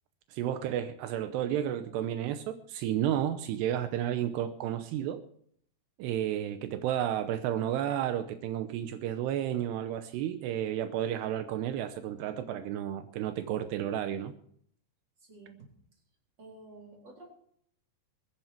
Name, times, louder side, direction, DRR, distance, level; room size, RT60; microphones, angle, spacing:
voice 1, 0.3-5.2 6.0-14.3, right 11 dB, 85° right, 2.9 m, -32 dB
voice 2, 15.2-15.7 16.4-17.3, right 2 dB, 25° right, 4.4 m, -51 dB
23.0 x 10.0 x 4.4 m
omnidirectional pair, 4.8 m